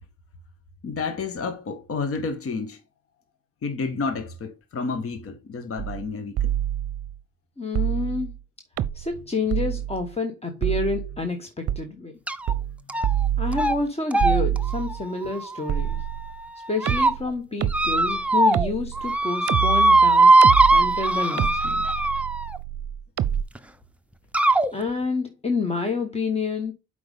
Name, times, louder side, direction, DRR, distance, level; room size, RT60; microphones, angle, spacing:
voice 1, 0.8-2.8 3.6-6.5, left 4 dB, 50° left, 1.3 m, -30 dB
sound 1, 5.8-6.1 6.4-7.2 7.8-8.4 8.8-9.2 9.5-10.1 10.6-11.2 11.7-11.8 12.5-12.8 13.0-13.9 14.2-15.0 15.7-16.5 16.9-23.4, right 11 dB, 55° right, 0.7 m, -27 dB
voice 2, 7.6-8.3 8.9-12.1 13.4-16.0 16.7-21.9 24.7-26.7, left 3 dB, 20° left, 1.1 m, -29 dB
sound 2, 12.3-12.5 12.9-13.3 13.5-13.7 14.1-16.0 16.6-17.1 17.7-18.7 19.0-22.6 23.5-23.6 24.3-24.7, right 2 dB, 5° right, 0.6 m, -20 dB
7.8 x 5.1 x 3.5 m
cardioid pair, 90°, 30 cm